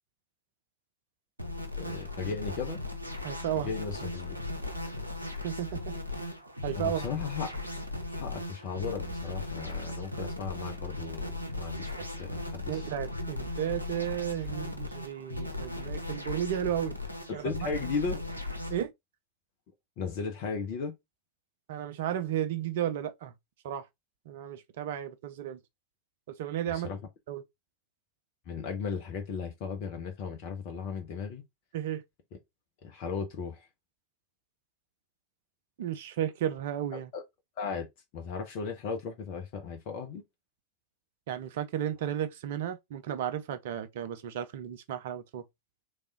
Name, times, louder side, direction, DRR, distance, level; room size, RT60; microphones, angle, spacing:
sound 1, 1.4-18.8, left 2 dB, 85° right, 0.8 m, -37 dB
voice 1, 1.7-2.8 3.5-4.4 6.8-7.5 8.2-11.9 12.2-12.9 17.3-18.2 20.0-20.9 26.7-27.0 28.5-31.4 32.8-33.6 36.9-37.2 37.6-37.9 38.1-40.2, left 5 dB, 45° left, 0.9 m, -36 dB
voice 2, 3.2-3.7 5.4-5.9 6.6-7.1 12.7-17.0 17.3-17.5 18.7-18.9 21.7-23.3 23.6-23.8 24.3-25.6 26.3-26.9 27.3-27.4 31.7-32.0 35.8-37.1 41.3-45.4, right 10 dB, 55° right, 0.6 m, -33 dB
3.5 x 3.3 x 3.8 m
figure-of-eight pair, 90°, 0 cm